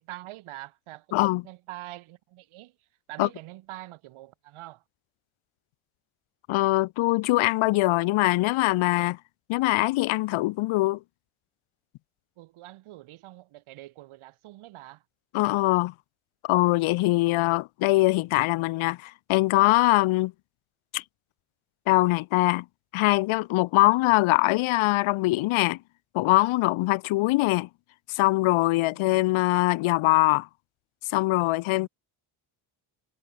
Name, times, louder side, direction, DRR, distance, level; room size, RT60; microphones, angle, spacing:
voice 1, 0.0-4.8 12.4-15.0 28.9-29.2 31.8-31.9, right 16 dB, 80° right, 3.8 m, -45 dB
voice 2, 1.1-1.4 3.2-3.3 6.5-9.2 9.5-11.0 15.3-15.9 16.4-20.3 20.9-21.0 21.9-22.6 22.9-25.8 26.1-27.7 28.1-30.5 31.1-31.9, left 20 dB, 75° left, 0.9 m, -22 dB
cardioid pair, 105°, 49 cm